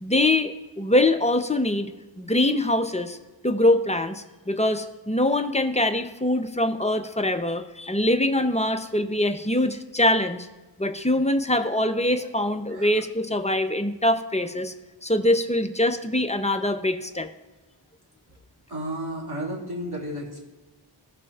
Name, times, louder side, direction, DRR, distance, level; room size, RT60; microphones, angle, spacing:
voice 1, 0.0-3.2 3.4-10.5 10.8-14.7 15.0-17.3, left 1 dB, 15° left, 7 dB, 0.6 m, -23 dB
voice 2, 12.7-13.0 18.7-20.4, right 1 dB, 50° right, -3 dB, 2.3 m, -33 dB
15.5 x 5.8 x 2.4 m, 1.1 s
wide cardioid pair, 40°, 49 cm